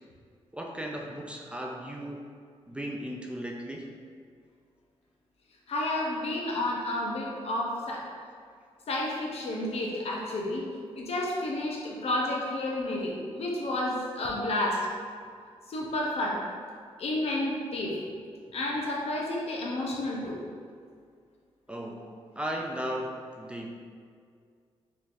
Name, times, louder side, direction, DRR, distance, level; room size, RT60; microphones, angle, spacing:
voice 1, 0.5-2.2 2.7-3.9 21.7-22.1 22.4-23.7, right 1 dB, 10° right, 0 dB, 0.4 m, -36 dB
voice 2, 5.7-8.0 8.9-10.6 11.0-14.8 15.7-16.4 17.0-18.0 18.5-20.4, left 1 dB, 65° left, -2 dB, 0.7 m, -31 dB
3.8 x 3.1 x 2.6 m, 2.1 s
cardioid pair, 90°, 11 cm